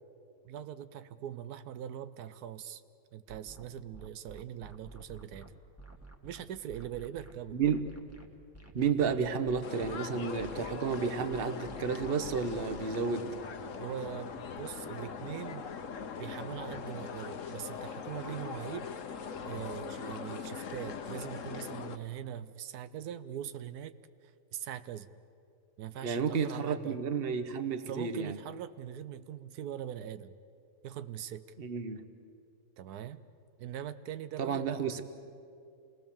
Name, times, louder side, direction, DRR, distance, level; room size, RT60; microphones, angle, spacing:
voice 1, 0.4-2.8 3.1-5.5 6.2-7.6 13.8-15.7 16.2-18.9 19.4-23.9 24.2-25.1 25.8-27.0 27.9-30.4 30.8-31.5 32.8-33.2 33.6-34.9, right 10 dB, 90° right, 12 dB, 1.2 m, -42 dB
sound 1, 3.3-10.0 10.4-12.8, right 2 dB, 10° right, 1.6 m, -51 dB
voice 2, 7.5-7.8 8.7-13.3 26.0-28.4 31.6-32.0 34.4-35.0, right 6 dB, 45° right, 8 dB, 1.2 m, -31 dB
sound 2, 9.6-22.0, left 6 dB, 60° left, 1.3 m, -41 dB
27.5 x 19.5 x 7.1 m, 2.5 s
omnidirectional pair, 1.6 m